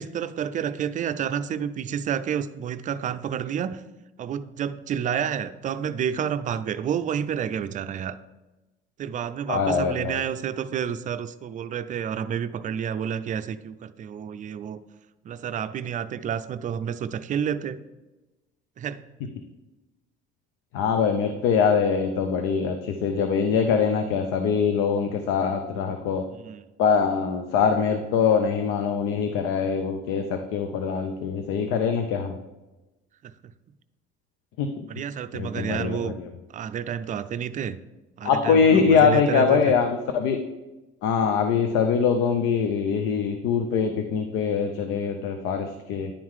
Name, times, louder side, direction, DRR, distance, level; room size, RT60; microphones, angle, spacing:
voice 1, 0.0-3.8 4.2-8.2 9.0-14.8 15.2-17.8 18.8-19.0 26.3-26.6 33.2-33.3 34.9-36.1 36.5-37.8 38.2-39.7, right 8 dB, 40° right, 12 dB, 0.4 m, -29 dB
voice 2, 9.5-10.2 20.7-26.2 26.8-32.3 34.6-34.7 35.3-36.3 38.2-40.4 41.0-46.1, left 6 dB, 85° left, 6 dB, 0.6 m, -23 dB
10.0 x 3.7 x 4.7 m, 1.1 s
cardioid pair, 115°, 20 cm